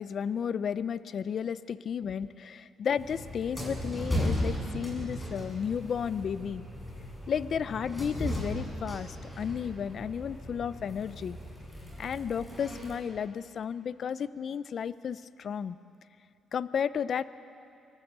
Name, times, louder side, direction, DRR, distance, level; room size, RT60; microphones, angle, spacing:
voice 1, 0.0-6.6 7.3-11.4 12.0-15.8 16.5-17.3, left 7 dB, 55° left, 16 dB, 0.6 m, -33 dB
sound 1, 3.0-13.0, equal, 10° left, 7.2 m, -36 dB
24.5 x 18.5 x 8.1 m, 2.6 s
cardioid pair, 90°, 0 cm